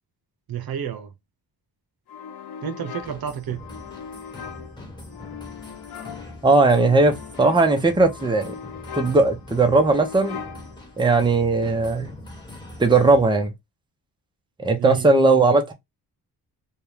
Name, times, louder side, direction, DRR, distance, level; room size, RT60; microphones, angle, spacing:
voice 1, 0.5-1.1 2.6-3.6 14.7-15.1, right 9 dB, 70° right, 0.8 m, -30 dB
sound 1, 2.1-11.6, left 7 dB, 75° left, 1.0 m, -40 dB
sound 2, 3.0-13.3, left 1 dB, 10° left, 1.3 m, -42 dB
voice 2, 6.4-8.5 8.9-10.4 11.0-12.1 12.8-13.5 14.6-15.7, right 3 dB, 10° right, 0.7 m, -18 dB
4.5 x 2.3 x 3.3 m
cardioid pair, 110°, 38 cm